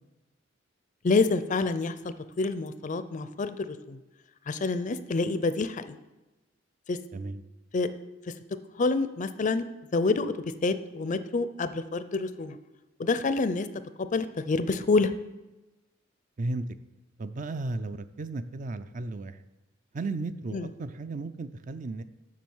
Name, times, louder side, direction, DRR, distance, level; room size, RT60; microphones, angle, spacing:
voice 1, 1.0-4.0 4.5-6.0 6.9-7.0 7.7-7.9 8.8-9.6 9.9-10.3 10.6-12.6 13.0-13.7 14.1-15.1 20.5-20.7, left 3 dB, 40° left, 12 dB, 0.5 m, -27 dB
voice 2, 17.2-19.4 19.9-22.0, right 2 dB, 40° right, 12 dB, 0.4 m, -34 dB
7.5 x 6.1 x 7.1 m, 1.1 s
head